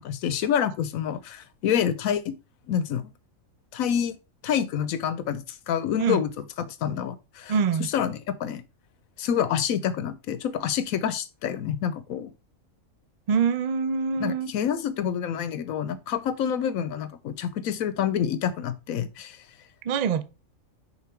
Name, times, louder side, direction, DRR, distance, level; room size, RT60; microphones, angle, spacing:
voice 1, 0.0-2.3 2.7-3.0 3.7-4.1 4.4-6.3 6.7-7.5 7.8-8.6 9.2-12.3 14.2-19.4, left 9 dB, 85° left, 1.1 m, -27 dB
voice 2, 7.5-7.9 13.3-14.5 19.8-20.2, right 6 dB, 70° right, 0.4 m, -24 dB
5.7 x 3.9 x 4.4 m
omnidirectional pair, 1.4 m